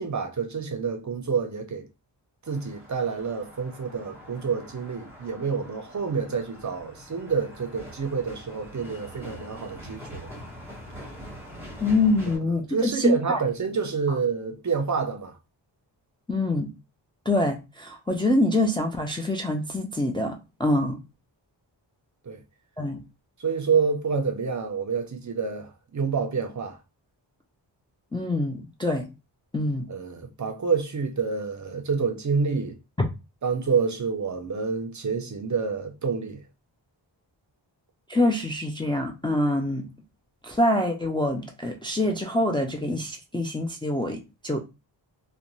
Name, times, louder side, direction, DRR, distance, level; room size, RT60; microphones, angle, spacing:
voice 1, 0.0-1.9 2.5-10.3 12.7-15.3 22.3-22.4 23.4-26.8 29.9-32.8 33.4-36.4, right 5 dB, 40° right, 0.5 m, -28 dB
sound 1, 2.4-12.4, equal, 5° right, 1.2 m, -44 dB
voice 2, 11.8-13.4 16.3-16.7 17.3-21.0 22.8-23.0 28.1-29.1 29.5-29.9 33.0-33.1 38.1-39.9 40.4-44.6, left 1 dB, 10° left, 0.4 m, -25 dB
2.5 x 2.1 x 3.0 m
wide cardioid pair, 90°, 45 cm